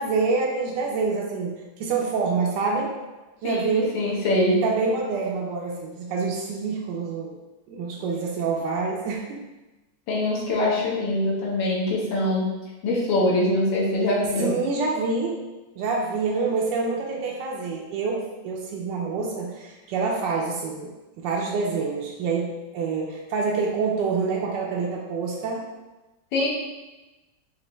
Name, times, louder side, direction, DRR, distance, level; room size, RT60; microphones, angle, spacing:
voice 1, 0.0-2.9 3.4-3.9 4.6-7.3 7.7-9.4 14.4-15.4 15.8-20.9 21.2-25.7, right 4 dB, 75° right, -2 dB, 1.1 m, -26 dB
voice 2, 3.9-4.6 10.1-12.5 12.8-14.5 26.3-26.5, left 1 dB, 70° left, -4 dB, 1.6 m, -23 dB
5.4 x 2.5 x 3.0 m, 1.1 s
omnidirectional pair, 2.3 m